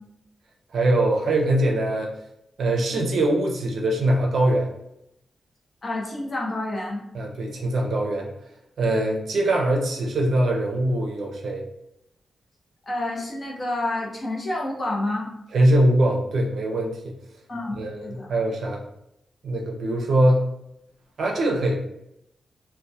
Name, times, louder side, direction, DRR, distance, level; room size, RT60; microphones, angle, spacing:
voice 1, 0.7-2.1 2.6-4.7 7.1-8.3 8.8-11.7 15.5-17.1 17.7-18.8 19.4-20.5 21.2-21.8, right 1 dB, 70° right, 0 dB, 0.5 m, -22 dB
voice 2, 5.8-7.0 12.9-15.3 17.5-18.3, left 1 dB, 30° left, -3 dB, 0.6 m, -29 dB
2.2 x 2.1 x 2.6 m, 0.81 s
wide cardioid pair, 145°, 0 cm